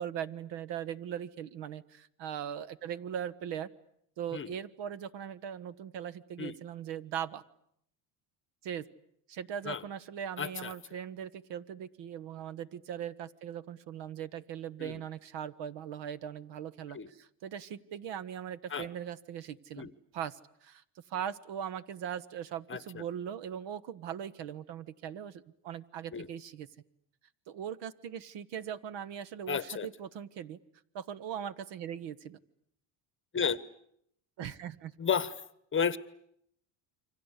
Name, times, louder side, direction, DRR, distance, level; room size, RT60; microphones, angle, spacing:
voice 1, 0.0-3.7 4.2-7.4 8.6-8.8 9.3-26.7 27.5-30.6 30.9-32.4 34.4-34.9, right 9 dB, 60° right, 16 dB, 1.5 m, -40 dB
voice 2, 10.4-10.7 14.8-15.0 16.9-17.1 18.7-18.9 19.8-19.9 22.7-22.8 26.1-26.3 29.5-29.9 33.3-33.6 35.0-35.3 35.7-36.0, left 7 dB, 25° left, 16 dB, 1.1 m, -32 dB
28.5 x 25.0 x 8.3 m, 0.71 s
cardioid pair, 130°, 49 cm